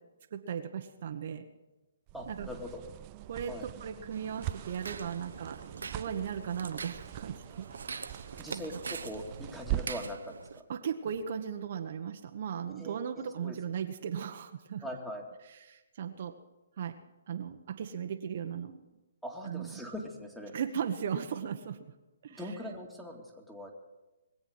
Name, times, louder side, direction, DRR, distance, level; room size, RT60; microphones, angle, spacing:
voice 1, 0.3-1.4 2.3-2.5 3.3-5.6 5.9-8.1 8.5-8.6 10.7-14.8 15.5-16.3 16.8-16.9 17.3-18.8 19.4-19.9 20.5-21.8 22.2-22.4, right 8 dB, 55° right, 5 dB, 1.2 m, -37 dB
voice 2, 2.1-2.8 3.5-3.7 8.4-10.6 12.8-13.6 14.8-15.3 19.2-20.5 22.3-23.7, left 1 dB, ahead, 0 dB, 2.3 m, -42 dB
sound 1, 2.1-10.2, right 15 dB, 30° right, 0.4 m, -42 dB
sound 2, 4.1-10.6, right 5 dB, 75° right, 1.0 m, -43 dB
21.5 x 8.0 x 7.9 m, 1.1 s
hypercardioid pair, 140°, 0 cm